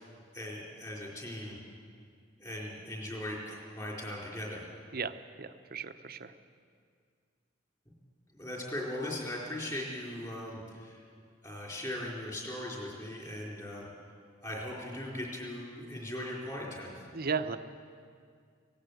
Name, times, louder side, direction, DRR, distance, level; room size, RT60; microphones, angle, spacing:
voice 1, 0.3-1.6 2.4-4.7 8.3-11.0 11.4-13.9 14.4-17.0, left 1 dB, 20° left, -3 dB, 4.6 m, -39 dB
voice 2, 4.9-6.3 17.1-17.6, right 5 dB, 50° right, 10 dB, 0.8 m, -35 dB
18.0 x 17.5 x 8.3 m, 2.2 s
head